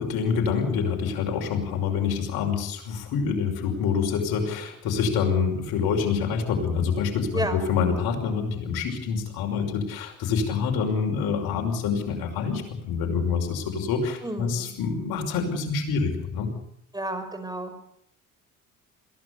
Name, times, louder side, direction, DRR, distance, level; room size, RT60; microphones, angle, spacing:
voice 1, 0.0-16.5, left 6 dB, 60° left, 2 dB, 5.7 m, -26 dB
voice 2, 14.2-14.7 16.9-17.8, right 1 dB, 10° right, 8 dB, 5.3 m, -31 dB
22.5 x 17.5 x 8.5 m, 0.73 s
hypercardioid pair, 55°, 42 cm